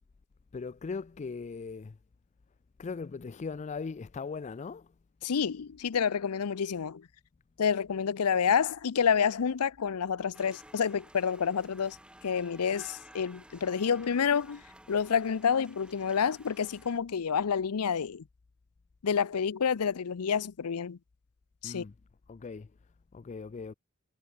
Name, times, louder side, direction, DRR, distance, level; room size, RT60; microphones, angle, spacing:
voice 1, 0.5-2.0 2.8-4.9 21.6-21.9 22.3-22.7 23.1-23.7, left 4 dB, 30° left, 0.4 m, -39 dB
voice 2, 5.2-7.1 7.6-12.0 12.2-14.6 14.9-18.2 19.0-21.0 21.6-21.8, left 7 dB, 85° left, 0.6 m, -28 dB
sound 1, 10.3-17.0, right 1 dB, 5° right, 5.8 m, -54 dB
head